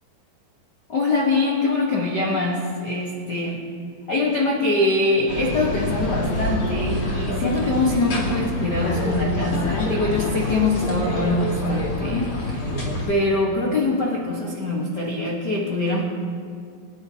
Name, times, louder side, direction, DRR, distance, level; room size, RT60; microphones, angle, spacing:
voice 1, 0.9-3.7 4.1-12.7 13.1-16.0, left 2 dB, 85° left, -2 dB, 0.9 m, -23 dB
sound 1, 5.3-13.1, left 2 dB, 40° left, 2.5 m, -26 dB
29.0 x 10.5 x 2.9 m, 2.2 s
omnidirectional pair, 4.3 m